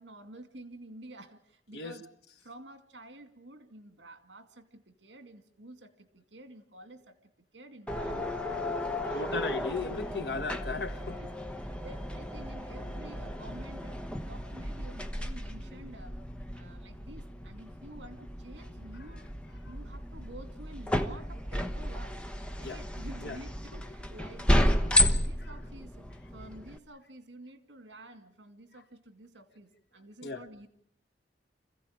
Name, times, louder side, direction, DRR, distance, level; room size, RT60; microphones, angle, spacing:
voice 1, 0.0-2.0 2.4-7.2 7.5-8.7 8.9-9.4 10.8-11.3 11.6-16.2 16.5-19.2 19.6-22.2 22.5-30.7, right 1 dB, 80° right, 2.4 m, -50 dB
sound 1, 7.9-26.8, left 1 dB, 5° left, 1.0 m, -33 dB
voice 2, 9.1-11.2 22.6-22.8 23.2-23.4 30.2-30.4, left 3 dB, 65° left, 1.4 m, -35 dB
26.0 x 15.5 x 8.9 m
head